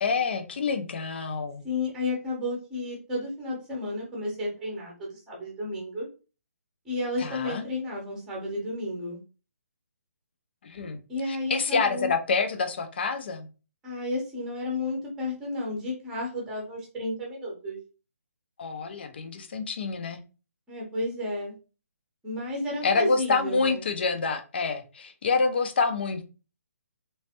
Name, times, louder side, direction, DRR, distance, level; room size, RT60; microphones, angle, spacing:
voice 1, 0.0-1.6 7.2-7.6 10.6-11.0 11.3-13.5 18.6-20.2 22.8-26.2, left 4 dB, 40° left, 8 dB, 0.6 m, -27 dB
voice 2, 1.6-6.1 6.8-9.2 11.1-12.1 13.8-17.8 20.7-21.5 22.2-23.9, left 2 dB, 5° right, -2 dB, 0.8 m, -32 dB
3.3 x 3.1 x 2.8 m, 0.33 s
hypercardioid pair, 170°, 9 cm